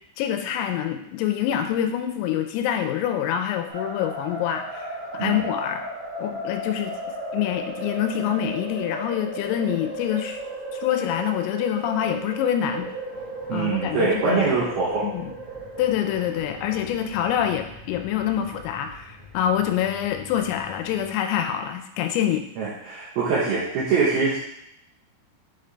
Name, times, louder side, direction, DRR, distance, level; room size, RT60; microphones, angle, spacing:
voice 1, 0.2-5.8 6.2-7.0 7.3-10.4 10.8-12.9 13.5-14.6 15.0-15.3 15.8-22.5, left 10 dB, 85° left, 6 dB, 3.3 m, -26 dB
sound 1, 3.7-21.1, right 1 dB, 40° right, 2.5 m, -36 dB
voice 2, 13.5-15.1 22.6-24.4, right 4 dB, 75° right, -8 dB, 2.3 m, -23 dB
8.0 x 3.9 x 3.3 m, 0.77 s
omnidirectional pair, 5.9 m